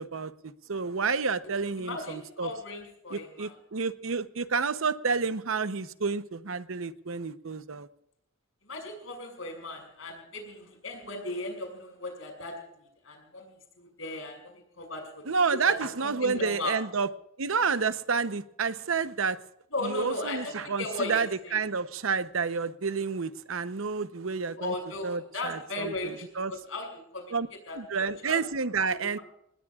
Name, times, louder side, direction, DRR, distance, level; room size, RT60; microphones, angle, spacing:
voice 1, 0.0-2.5 3.1-7.9 15.3-17.1 17.4-19.4 19.8-24.7 25.0-26.5 27.3-27.5 27.7-29.2, right 5 dB, 85° right, 13 dB, 0.8 m, -30 dB
voice 2, 1.8-3.5 8.7-15.2 15.5-16.8 19.7-21.6 24.6-27.4 27.7-28.4 29.0-29.2, left 2 dB, 80° left, 3 dB, 6.1 m, -37 dB
27.5 x 19.5 x 2.4 m, 0.78 s
head